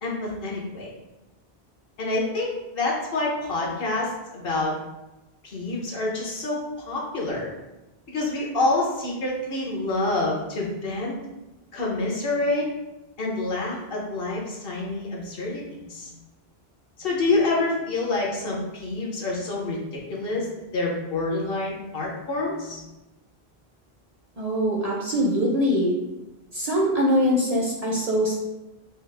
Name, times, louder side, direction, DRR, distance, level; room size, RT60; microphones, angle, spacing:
voice 1, 0.0-0.9 2.0-4.7 5.4-6.6 6.9-7.5 8.1-11.2 11.7-12.7 13.2-15.6 15.9-16.1 17.0-19.8 20.1-20.5 20.7-22.8, left 2 dB, 65° left, -3 dB, 1.0 m, -27 dB
voice 2, 24.4-25.9 26.5-28.4, equal, 50° right, -2 dB, 0.5 m, -23 dB
4.4 x 2.0 x 3.3 m, 1.0 s
omnidirectional pair, 1.1 m